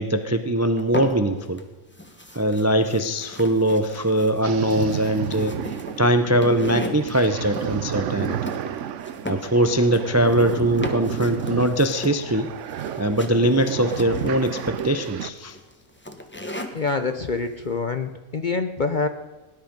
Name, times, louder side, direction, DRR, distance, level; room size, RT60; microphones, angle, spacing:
voice 1, 0.0-1.6 2.3-5.5 6.0-8.4 9.3-12.5 13.0-15.6, right 1 dB, 25° right, 9 dB, 0.3 m, -21 dB
sound 1, 0.8-1.6 1.9-16.9, left 1 dB, 10° left, 1.1 m, -37 dB
sound 2, 4.4-15.3, right 10 dB, 60° right, 0.9 m, -32 dB
voice 2, 16.7-19.1, left 4 dB, 45° left, 8 dB, 0.6 m, -26 dB
18.0 x 10.5 x 5.2 m, 1.2 s
omnidirectional pair, 1.6 m